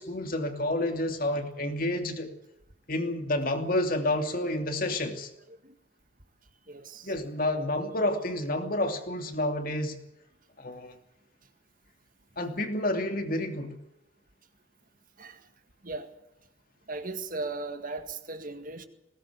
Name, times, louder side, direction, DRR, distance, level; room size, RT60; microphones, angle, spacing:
voice 1, 0.0-2.3 2.9-5.3 7.0-10.0 10.6-11.0 12.4-13.8, left 1 dB, 45° left, 2.8 m, -29 dB
voice 2, 6.7-7.2 15.2-15.5 15.8-16.1 16.9-18.9, right 3 dB, 40° right, 1.9 m, -37 dB
21.0 x 18.5 x 8.3 m
head